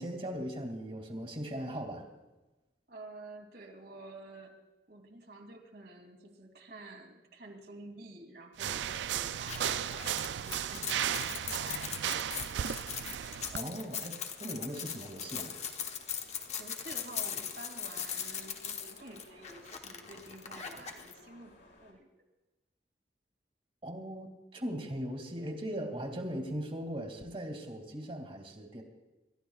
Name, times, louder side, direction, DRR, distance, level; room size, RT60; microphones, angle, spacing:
voice 1, 0.0-2.1 13.5-15.5 23.8-28.8, equal, 30° right, 3 dB, 2.3 m, -39 dB
voice 2, 2.9-4.5 4.9-12.2 16.6-22.2, right 2 dB, 60° right, 2 dB, 2.7 m, -50 dB
sound 1, 8.6-13.6, right 9 dB, 85° right, 0.4 m, -35 dB
sound 2, 9.4-21.1, left 7 dB, 40° left, 1.1 m, -40 dB
sound 3, 12.4-21.9, left 1 dB, 75° left, 4.8 m, -59 dB
27.0 x 13.5 x 2.4 m, 1.1 s
head